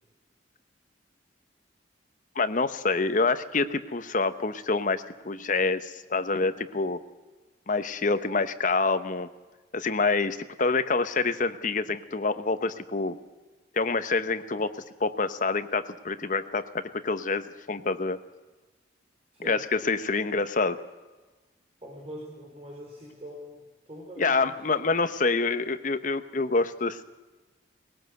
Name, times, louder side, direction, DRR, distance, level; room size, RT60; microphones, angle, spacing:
voice 1, 2.3-7.0 7.7-9.3 9.7-13.2 13.7-18.2 19.4-20.8 24.2-27.0, left 3 dB, 45° left, 11 dB, 1.0 m, -27 dB
voice 2, 21.8-24.7, equal, 35° right, -2 dB, 4.4 m, -43 dB
20.0 x 18.0 x 7.9 m, 1.2 s
head